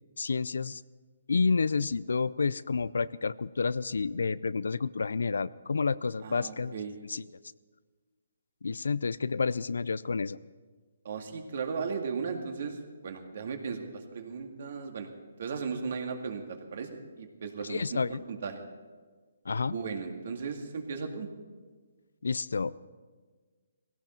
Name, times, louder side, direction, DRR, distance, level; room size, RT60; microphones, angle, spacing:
voice 1, 0.2-0.8 1.3-6.8 7.1-7.2 8.6-10.4 17.7-18.2 19.5-19.8 22.2-22.9, left 4 dB, 85° left, 19 dB, 0.4 m, -30 dB
voice 2, 6.2-6.9 11.0-15.1 15.4-18.6 19.7-21.3, right 5 dB, 55° right, 5 dB, 2.1 m, -36 dB
18.5 x 16.5 x 4.5 m, 1.5 s
hypercardioid pair, 155°, 0 cm